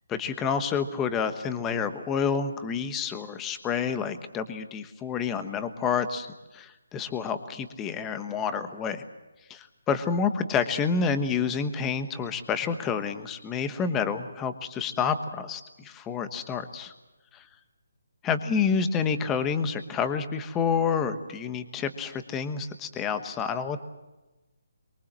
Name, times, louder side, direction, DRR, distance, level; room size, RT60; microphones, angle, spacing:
voice 1, 0.1-6.3 6.5-9.0 9.5-16.9 17.3-17.4 18.2-23.8, left 6 dB, 10° left, 10 dB, 1.2 m, -29 dB
24.0 x 22.0 x 7.5 m, 1.1 s
hypercardioid pair, 170°, 0 cm